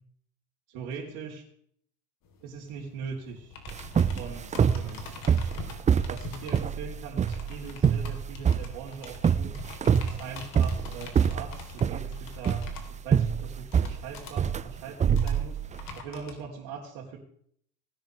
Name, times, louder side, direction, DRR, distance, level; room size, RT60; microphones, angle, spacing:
voice 1, 0.7-1.4 2.4-3.5 3.9-5.8 6.1-9.6 10.1-12.7 13.0-15.6 15.9-17.2, right 6 dB, 55° right, -4 dB, 3.8 m, -41 dB
sound 1, 2.2-16.4, left 4 dB, 45° left, 3.6 m, -45 dB
sound 2, 3.7-15.9, right 7 dB, 15° right, 0.5 m, -26 dB
19.5 x 10.5 x 3.4 m, 0.63 s
hypercardioid pair, 90°, 45 cm